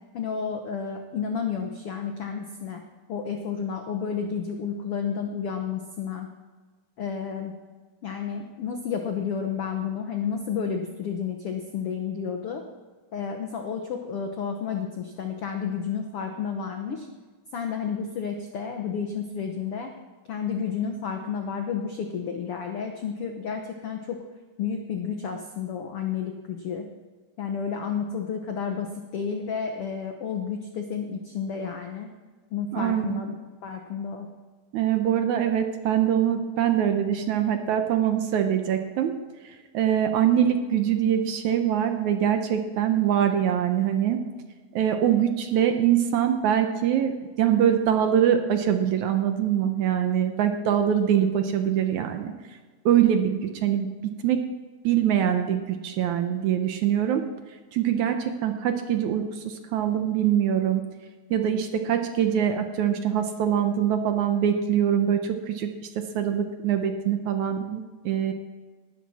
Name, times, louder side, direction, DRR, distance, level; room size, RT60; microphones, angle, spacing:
voice 1, 0.1-2.8 3.1-6.3 7.0-7.5 8.0-12.6 13.1-17.1 17.5-19.9 20.3-24.2 24.6-26.9 27.4-32.1 32.5-33.4 33.6-34.3, left 6 dB, 75° left, 4 dB, 1.3 m, -31 dB
voice 2, 32.7-33.1 34.7-39.1 39.7-44.2 44.7-47.1 47.4-52.3 52.9-54.4 54.8-57.2 57.7-60.8 61.3-65.7 66.0-68.3, right 9 dB, 70° right, 6 dB, 2.0 m, -23 dB
19.0 x 12.5 x 4.3 m, 1.4 s
omnidirectional pair, 4.0 m